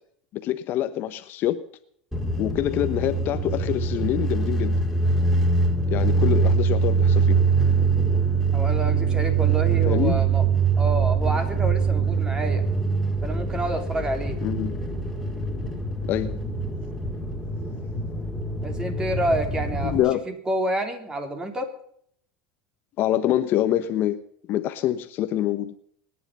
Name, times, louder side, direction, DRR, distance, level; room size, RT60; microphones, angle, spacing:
voice 1, 0.3-1.6 2.4-4.8 5.9-7.4 9.9-10.2 14.4-14.8 16.0-16.4 19.9-20.2 23.0-24.2 24.5-25.7, left 12 dB, 50° left, 11 dB, 1.2 m, -25 dB
sound 1, 2.1-20.0, right 4 dB, ahead, 4.5 m, -23 dB
voice 2, 8.5-10.4 10.8-12.6 13.2-14.4 18.6-20.0 20.3-21.7, right 1 dB, 15° right, 5 dB, 3.8 m, -28 dB
23.5 x 10.0 x 5.5 m, 0.66 s
supercardioid pair, 110°, 5 cm